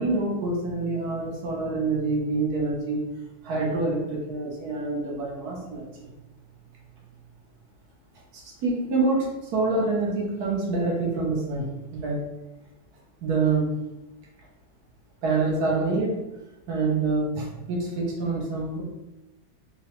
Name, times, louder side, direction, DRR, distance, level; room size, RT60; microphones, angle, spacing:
voice 1, 0.0-3.0 3.4-6.1 8.3-12.2 13.2-13.7 15.2-16.1 16.7-18.8, right 3 dB, 60° right, -3 dB, 1.3 m, -26 dB
3.9 x 2.2 x 2.9 m, 1.0 s
omnidirectional pair, 2.0 m